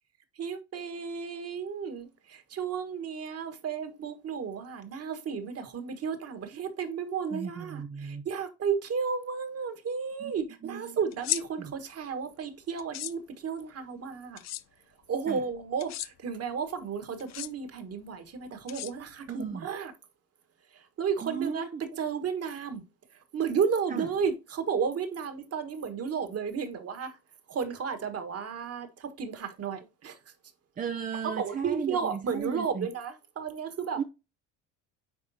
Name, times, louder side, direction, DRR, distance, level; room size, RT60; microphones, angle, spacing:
voice 1, 0.4-14.4 15.1-19.9 21.0-21.7 22.0-22.8 23.3-27.1 27.5-30.2 31.4-34.0, right 6 dB, 40° right, 1.5 m, -33 dB
voice 2, 7.3-8.2 10.2-10.4 10.6-11.0 11.6-11.7 15.3-15.4 19.3-19.7 21.2-21.8 23.9-24.1 30.8-32.9 34.0-34.1, right 7 dB, 25° right, 0.5 m, -35 dB
sound 1, 11.1-11.4 12.8-13.1 14.4-14.6 15.8-16.1 17.2-17.5 18.7-19.3, left 14 dB, 45° left, 0.5 m, -34 dB
9.7 x 3.6 x 2.8 m
supercardioid pair, 85°, 38 cm